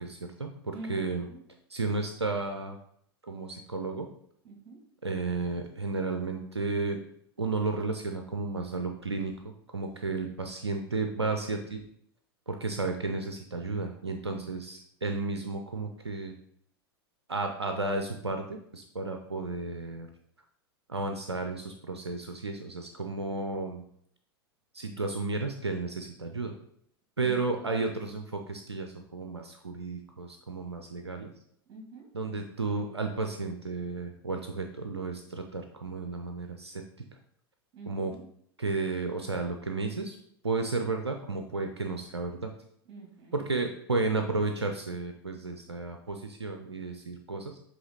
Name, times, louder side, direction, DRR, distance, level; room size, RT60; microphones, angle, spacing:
voice 1, 0.0-1.3 1.7-2.8 3.2-4.1 5.0-7.0 7.4-11.8 12.5-16.3 17.3-20.1 20.9-23.8 24.7-26.5 27.2-31.3 32.1-36.8 37.9-38.2 38.6-40.2 40.4-42.5 43.3-47.6, right 3 dB, 85° right, 5 dB, 0.5 m, -33 dB
voice 2, 4.4-4.8 14.3-14.5 31.7-32.1 37.7-38.3 42.9-43.3, right 3 dB, 40° right, 1 dB, 2.4 m, -45 dB
7.6 x 3.2 x 4.1 m, 0.68 s
figure-of-eight pair, 90°, 14 cm